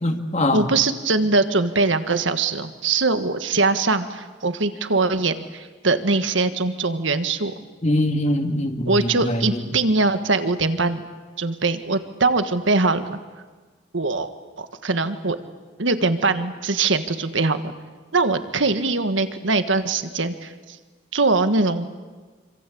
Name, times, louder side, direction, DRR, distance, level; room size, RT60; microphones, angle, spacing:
voice 1, 0.0-0.6 7.8-9.6, left 1 dB, 35° left, 5 dB, 2.1 m, -23 dB
voice 2, 0.5-7.5 8.8-11.0 11.4-13.2 13.9-14.3 14.6-15.4 15.8-17.7 18.1-20.8 21.1-21.9, right 3 dB, 80° right, 10 dB, 1.6 m, -22 dB
26.5 x 26.0 x 8.6 m, 1.4 s
head